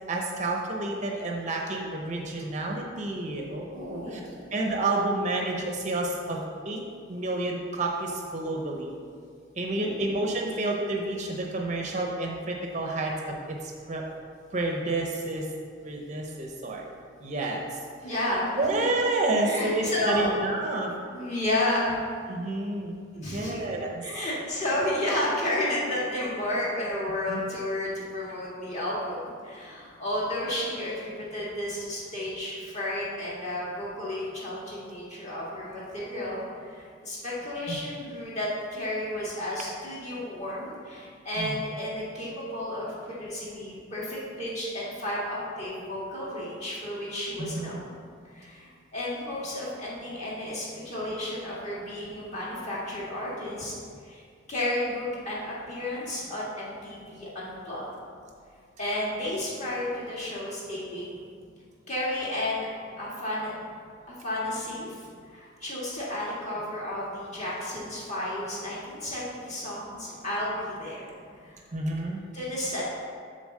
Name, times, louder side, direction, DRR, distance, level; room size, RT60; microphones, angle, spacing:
voice 1, 0.1-4.2 4.5-6.8 7.1-8.9 9.6-13.3 13.9-14.0 14.5-15.4 15.8-16.8 17.2-17.6 18.6-20.9 22.3-24.0 27.3-27.4 37.7-37.8 41.4-41.6 47.4-47.7 71.7-72.2, right 2 dB, 35° right, 0 dB, 0.6 m, -29 dB
voice 2, 3.7-4.4 9.7-10.1 18.0-18.9 19.4-20.4 21.1-21.9 23.1-47.9 48.2-53.7 54.0-54.2 54.5-57.9 58.8-61.2 61.9-62.7 63.0-63.5 64.1-65.0 65.3-71.6 72.3-72.8, left 1 dB, 35° left, -7 dB, 1.9 m, -32 dB
7.1 x 3.9 x 6.4 m, 2.2 s
head